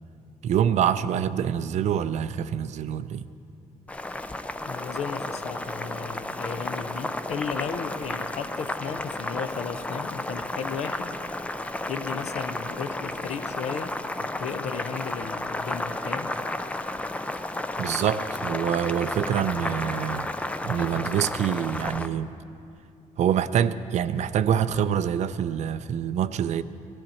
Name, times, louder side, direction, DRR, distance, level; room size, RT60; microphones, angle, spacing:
voice 1, 0.4-3.3 17.8-20.3 20.6-22.3 23.2-26.6, right 9 dB, 55° right, 13 dB, 0.4 m, -26 dB
Boiling, 3.9-22.1, left 2 dB, 10° left, 0.4 m, -32 dB
voice 2, 4.6-11.2 11.9-14.0 14.4-16.4, left 6 dB, 50° left, 11 dB, 0.6 m, -35 dB
17.5 x 13.0 x 4.3 m, 2.5 s
cardioid pair, 120°, 14 cm